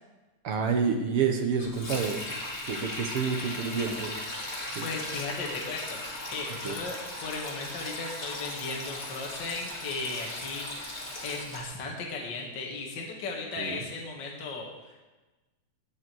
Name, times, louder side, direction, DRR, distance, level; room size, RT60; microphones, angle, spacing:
voice 1, 0.4-2.2 2.6-4.2 4.7-4.8 6.6-6.7 13.6-13.8, right 6 dB, 65° right, 4 dB, 1.5 m, -28 dB
Sink (filling or washing), 1.6-11.6, left 1 dB, 25° left, 2.3 m, -38 dB
voice 2, 4.8-10.8 11.2-15.0, left 3 dB, 40° left, -1 dB, 2.2 m, -36 dB
17.5 x 9.0 x 4.7 m, 1.2 s
omnidirectional pair, 3.6 m